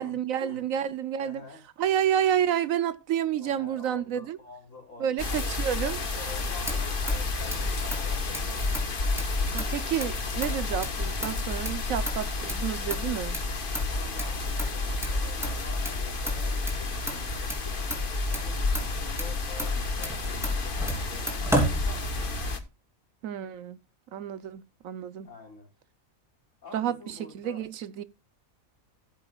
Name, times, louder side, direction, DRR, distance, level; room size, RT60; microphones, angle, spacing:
voice 1, 0.0-1.4 1.8-4.4 5.0-6.0 9.5-13.4 23.2-23.8 24.1-25.3 26.7-28.0, right 10 dB, 75° right, 1.1 m, -29 dB
voice 2, 1.2-1.6 3.4-5.5 6.1-8.5 13.9-17.8 18.3-20.7 21.0-22.4 25.2-25.7 26.6-27.7, left 4 dB, 60° left, 4.5 m, -47 dB
sound 1, 5.2-22.6, left 3 dB, 40° left, 1.4 m, -30 dB
Motor vehicle (road), 6.3-22.5, right 1 dB, ahead, 3.0 m, -35 dB
16.0 x 8.6 x 2.3 m
omnidirectional pair, 1.5 m